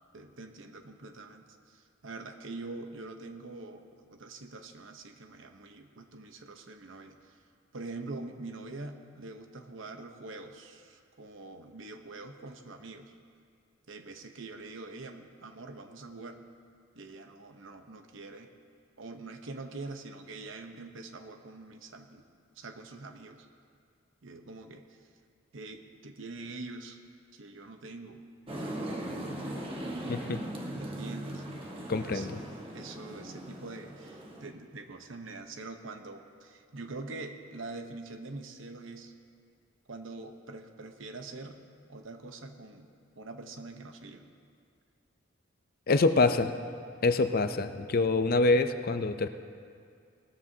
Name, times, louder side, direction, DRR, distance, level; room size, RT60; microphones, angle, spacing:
voice 1, 0.1-7.4 7.7-13.1 13.9-16.4 16.9-18.5 19.0-22.3 22.6-23.5 24.2-25.1 25.5-27.0 27.3-28.2 28.6-29.2 30.8-31.4 31.9-32.5 32.7-39.1 39.9-41.6 41.9-42.9 43.2-44.3, right 3 dB, 75° right, 6 dB, 0.9 m, -44 dB
sound 1, 28.5-34.5, right 1 dB, 30° right, 1.2 m, -39 dB
voice 2, 30.1-30.4 31.9-32.4 45.9-46.5 47.0-49.3, left 3 dB, 50° left, 9 dB, 0.5 m, -25 dB
19.0 x 13.5 x 2.8 m, 2.3 s
head